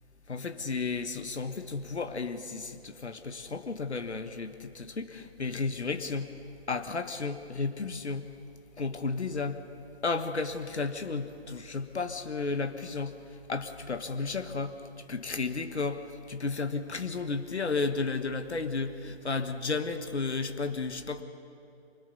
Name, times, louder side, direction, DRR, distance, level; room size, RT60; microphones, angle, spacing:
voice 1, 0.3-6.3 6.7-8.3 8.8-9.6 10.0-14.8 15.1-21.2, left 4 dB, 85° left, 8 dB, 1.4 m, -33 dB
25.0 x 19.5 x 7.0 m, 2.6 s
figure-of-eight pair, 145°, 33 cm